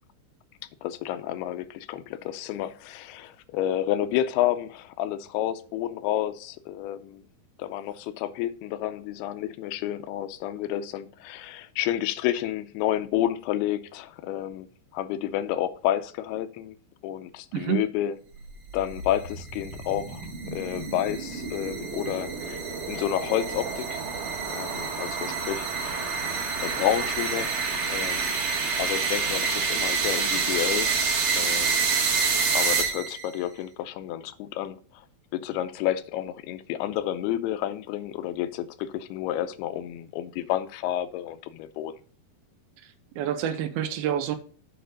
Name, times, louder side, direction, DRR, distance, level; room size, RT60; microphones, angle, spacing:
voice 1, 0.8-7.2 7.6-14.7 14.9-16.8 17.0-18.2 18.7-24.0 24.5-28.5 28.8-30.9 31.4-31.9 32.5-34.8 35.3-41.9, left 12 dB, 85° left, 2.5 m, -30 dB
sound 1, 18.5-33.3, right 5 dB, 55° right, 2.8 m, -28 dB
voice 2, 43.2-44.4, right 10 dB, 85° right, 2.5 m, -27 dB
8.0 x 4.3 x 6.3 m
omnidirectional pair, 4.5 m